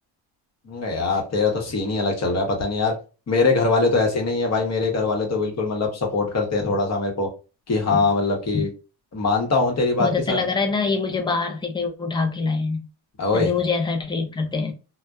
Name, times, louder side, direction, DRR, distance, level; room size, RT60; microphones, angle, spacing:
voice 1, 0.7-3.0 3.3-7.3 7.7-8.7 9.1-10.4 13.2-13.5, left 3 dB, 35° left, 0.9 m, -22 dB
voice 2, 10.0-12.9 13.3-14.7, left 4 dB, 10° left, 0.4 m, -24 dB
2.5 x 2.1 x 2.2 m
cardioid pair, 115°, 46 cm